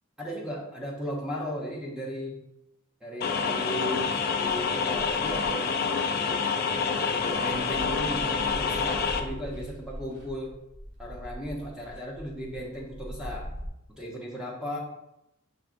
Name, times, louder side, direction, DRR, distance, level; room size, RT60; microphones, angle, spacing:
voice 1, 0.2-2.4 3.0-5.7 6.1-6.4 6.9-10.5 11.0-13.5 14.0-14.8, equal, 5° right, -4 dB, 0.7 m, -36 dB
sound 1, 3.2-9.2, left 5 dB, 50° left, 0.4 m, -27 dB
sound 2, 4.5-5.7 6.4-6.5 6.8-13.7, equal, 60° right, 1.0 m, -41 dB
5.7 x 3.6 x 2.5 m, 0.87 s
head